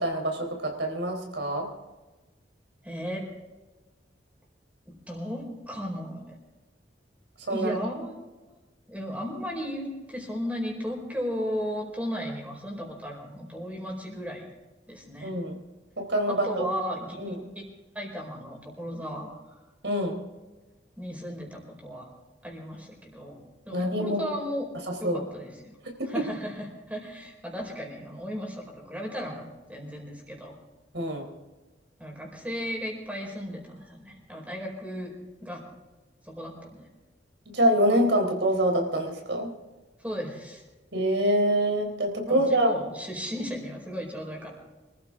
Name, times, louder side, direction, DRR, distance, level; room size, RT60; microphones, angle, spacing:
voice 1, 0.0-1.7 7.5-7.7 15.2-15.5 16.0-16.7 17.2-17.4 19.8-20.2 23.7-24.3 25.0-25.2 26.0-26.3 30.9-31.3 37.5-39.5 40.9-42.7, right 1 dB, 85° right, 3 dB, 4.1 m, -25 dB
voice 2, 2.8-3.3 4.9-6.4 7.5-8.2 8.5-8.6 8.9-14.5 14.9-15.3 16.3-17.3 17.9-19.6 21.0-22.1 22.4-24.7 25.0-25.8 26.1-30.6 32.0-35.1 35.4-35.6 36.2-36.9 40.0-40.6 42.3-44.6, equal, 10° right, 0 dB, 4.7 m, -35 dB
25.5 x 14.0 x 3.8 m, 1.2 s
head